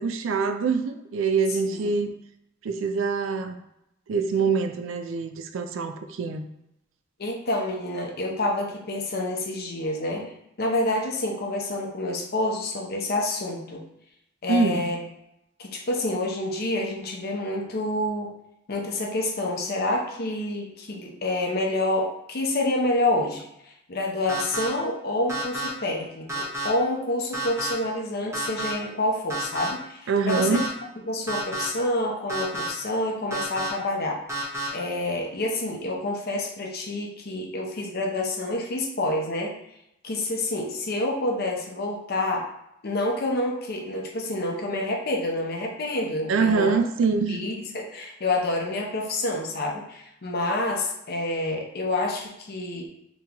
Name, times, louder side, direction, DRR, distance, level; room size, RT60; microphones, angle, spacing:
voice 1, 0.0-2.1 2.6-3.6 4.1-6.5 14.5-14.8 30.1-30.6 46.3-47.5, right 4 dB, 75° right, 8 dB, 0.4 m, -24 dB
voice 2, 7.2-10.3 10.6-13.8 14.4-15.0 15.6-18.3 18.7-30.6 31.1-34.2 34.7-39.6 40.0-42.5 42.8-46.8 47.3-52.9, left 1 dB, 50° left, 0 dB, 0.6 m, -28 dB
sound 1, 24.3-24.7 25.3-25.7 26.3-26.7 27.3-27.7 28.3-28.7 29.3-29.7 30.3-30.7 31.3-31.7 32.3-32.7 33.3-33.7 34.3-34.7, right 2 dB, 15° right, 0.8 m, -30 dB
3.6 x 3.0 x 2.9 m, 0.82 s
head